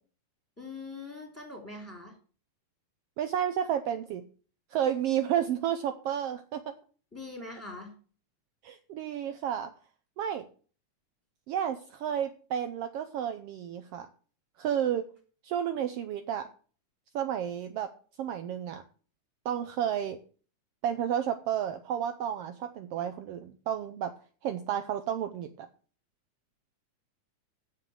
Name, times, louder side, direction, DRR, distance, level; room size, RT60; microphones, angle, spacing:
voice 1, 0.6-2.2 7.1-7.9, left 3 dB, 5° left, 2 dB, 2.7 m, -42 dB
voice 2, 3.2-4.2 4.7-6.7 8.6-9.7 10.2-10.4 11.5-14.1 14.6-15.1 15.4-16.5 17.1-17.9 18.2-18.8 19.4-20.2 20.8-24.1 24.4-25.7, right 9 dB, 80° right, 9 dB, 1.3 m, -31 dB
9.1 x 7.3 x 7.7 m, 0.41 s
omnidirectional pair, 3.6 m